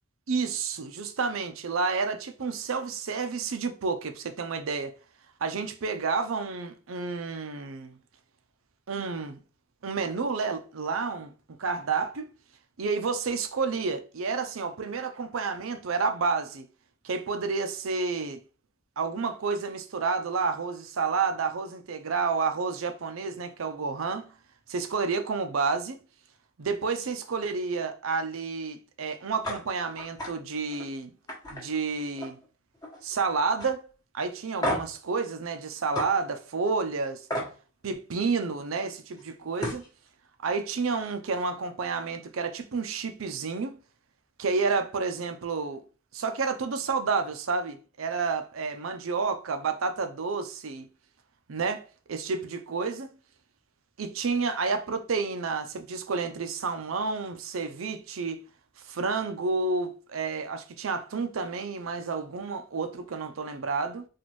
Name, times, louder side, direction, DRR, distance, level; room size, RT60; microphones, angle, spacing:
voice 1, 0.3-4.9 5.4-8.0 8.9-9.4 9.8-11.3 11.6-12.3 12.8-16.7 17.0-18.4 19.0-24.3 24.7-26.0 26.6-31.1 31.5-32.4 33.0-33.8 34.1-37.3 37.8-39.8 40.4-43.8 44.4-45.8 46.1-50.9 51.5-53.2 54.0-58.4 58.9-64.1, right 4 dB, 80° right, 0.6 m, -30 dB
sound 1, 29.4-29.6 30.0-30.3 30.7-30.9 31.3-32.5 32.7-33.2 33.6-33.7 34.6-35.0 35.9-36.1 37.3-37.5 39.2-39.3 39.6-39.9, left 1 dB, 20° left, 1.1 m, -32 dB
4.2 x 2.5 x 3.1 m
head